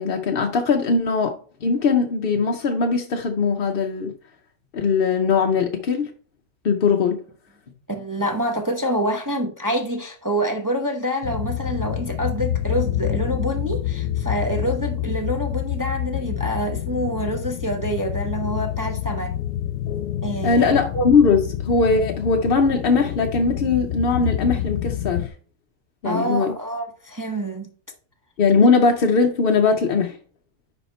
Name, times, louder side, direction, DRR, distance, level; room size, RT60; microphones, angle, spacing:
voice 1, 0.0-4.1 4.7-6.1 6.6-7.2 20.4-25.3 26.0-26.5 28.4-30.2, left 4 dB, 55° left, 0.7 m, -20 dB
voice 2, 7.9-19.3 20.2-20.8 26.0-27.7, equal, 25° right, 0.4 m, -26 dB
sound 1, 11.2-25.3, left 11 dB, 80° left, 1.2 m, -27 dB
9.9 x 3.6 x 4.2 m
omnidirectional pair, 1.7 m